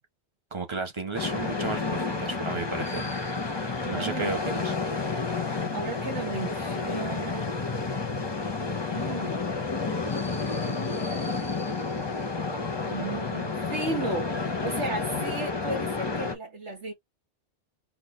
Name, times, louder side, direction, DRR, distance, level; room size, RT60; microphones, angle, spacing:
voice 1, 0.5-3.1 3.9-4.7, right 3 dB, 25° right, 1.0 m, -33 dB
sound 1, 1.1-16.3, left 4 dB, 25° left, 0.7 m, -30 dB
voice 2, 3.8-4.8 5.5-7.5 8.9-9.7 10.8-11.1 12.8-16.9, right 2 dB, 75° right, 2.0 m, -35 dB
4.1 x 2.6 x 3.1 m
omnidirectional pair, 1.2 m